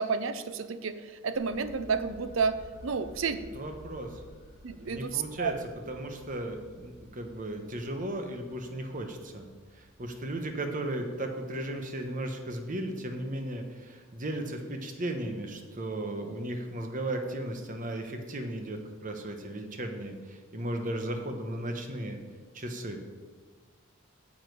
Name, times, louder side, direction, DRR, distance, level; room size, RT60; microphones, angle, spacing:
voice 1, 0.0-2.5 2.8-3.4 4.6-5.5, right 5 dB, 70° right, 12 dB, 0.6 m, -30 dB
sound 1, 1.3-13.2, equal, 40° left, 1.7 m, -54 dB
voice 2, 3.5-4.2 4.8-5.5 5.9-9.5 9.7-22.2 22.5-23.0, right 1 dB, 40° right, 4 dB, 1.1 m, -36 dB
9.3 x 7.3 x 4.8 m, 1.5 s
head